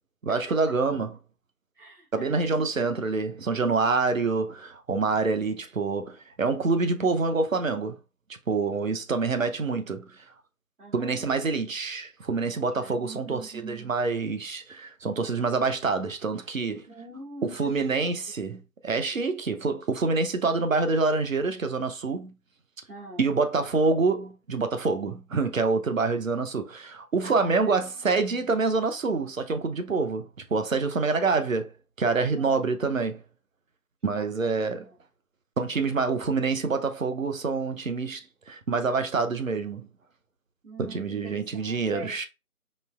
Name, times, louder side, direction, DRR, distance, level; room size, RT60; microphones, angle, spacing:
voice 1, 0.2-1.1 2.1-8.0 8.5-10.2 10.9-16.8 17.6-22.3 23.2-31.7 32.0-33.2 34.0-34.9 35.6-38.2 38.5-39.9 40.8-42.3, right 4 dB, 60° right, 0.8 m, -26 dB
voice 2, 1.7-2.7 9.4-9.5 10.8-11.2 12.8-14.0 16.9-18.1 19.1-19.2 22.9-23.2 27.2-28.2 32.3-32.6 34.0-35.0 40.6-42.2, right 2 dB, 80° right, 2.3 m, -44 dB
5.3 x 3.1 x 2.4 m
figure-of-eight pair, 165°, 45 cm